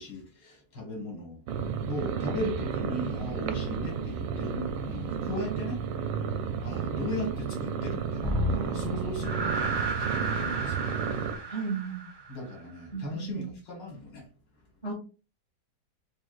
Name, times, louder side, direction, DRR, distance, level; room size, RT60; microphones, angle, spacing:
voice 1, 0.0-1.4 1.8-5.8 6.6-10.9 12.3-14.2, left 2 dB, 75° left, 2.5 m, -37 dB
sound 1, 1.5-11.3, right 7 dB, 90° right, 1.3 m, -32 dB
sound 2, 8.2-12.6, right 2 dB, 35° right, 0.4 m, -32 dB
voice 2, 11.5-12.0 12.9-13.5 14.8-14.9, right 5 dB, 25° left, 2.5 m, -34 dB
5.3 x 2.9 x 2.4 m
omnidirectional pair, 1.9 m